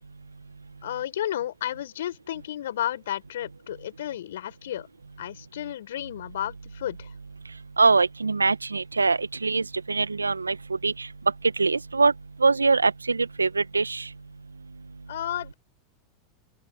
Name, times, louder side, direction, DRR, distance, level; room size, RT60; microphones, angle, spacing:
voice 1, 0.8-4.9 5.2-7.1 15.1-15.5, left 12 dB, 70° left, 6.0 m, -32 dB
voice 2, 7.8-10.5 10.8-11.1 11.6-12.1 12.4-14.0, right 4 dB, 85° right, 1.5 m, -23 dB
open air
figure-of-eight pair, 85°, 0 cm